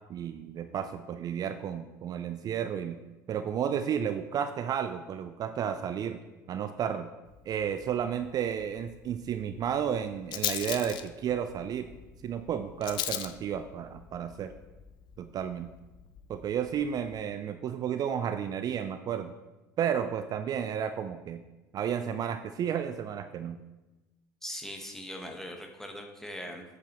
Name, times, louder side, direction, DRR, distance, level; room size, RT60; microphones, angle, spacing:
voice 1, 0.1-3.0 3.3-6.2 6.5-7.1 7.5-11.9 12.2-14.5 15.2-15.7 16.3-19.3 19.8-21.4 21.7-23.6, right 8 dB, 40° right, 9 dB, 0.4 m, -32 dB
Rattle, 7.3-17.2, left 11 dB, 50° left, 0.5 m, -41 dB
voice 2, 24.4-26.6, left 1 dB, 5° left, 2 dB, 1.3 m, -40 dB
8.2 x 6.9 x 3.0 m, 1.1 s
hypercardioid pair, 70°, 10 cm